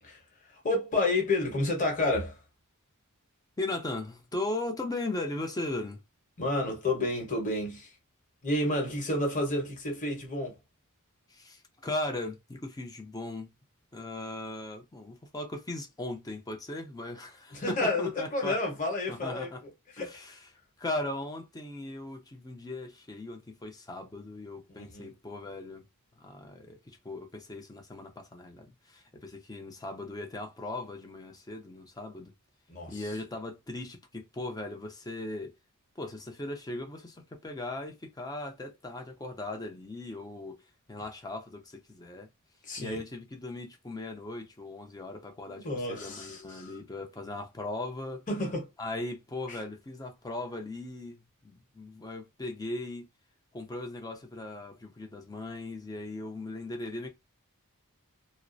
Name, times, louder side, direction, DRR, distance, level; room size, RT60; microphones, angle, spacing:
voice 1, 0.5-2.4 6.4-7.9 8.4-10.6 17.5-19.5 20.0-20.1 24.8-25.1 32.7-33.0 42.6-43.0 45.5-46.7 48.3-48.7 49.5-49.6, left 2 dB, 35° left, 1.0 m, -30 dB
voice 2, 3.6-6.0 11.3-13.5 13.9-18.6 19.1-19.6 20.0-20.5 20.8-25.8 26.2-32.3 32.9-35.5 36.0-40.6 40.9-42.3 42.8-48.3 48.8-53.1 53.5-57.1, left 2 dB, 15° left, 0.5 m, -38 dB
2.4 x 2.0 x 2.5 m
head